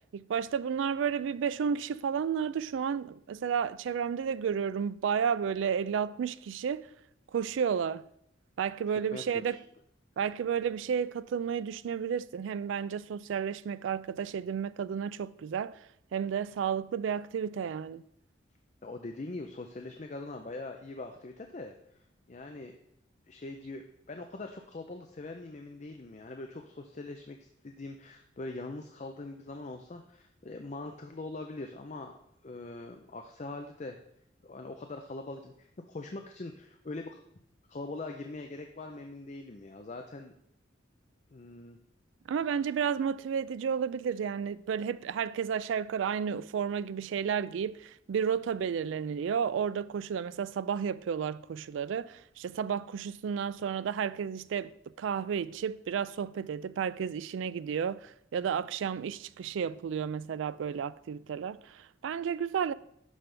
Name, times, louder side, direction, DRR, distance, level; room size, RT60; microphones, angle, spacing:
voice 1, 0.1-6.9 7.3-8.1 8.6-9.6 10.2-15.9 16.1-18.0 42.3-54.7 55.0-62.7, right 7 dB, 75° right, 0.3 m, -32 dB
voice 2, 9.1-9.6 18.8-22.0 22.3-22.8 23.3-32.2 32.4-34.0 34.4-37.2 37.7-40.3 41.3-41.8, left 2 dB, 35° left, 0.5 m, -42 dB
11.5 x 5.3 x 3.3 m
head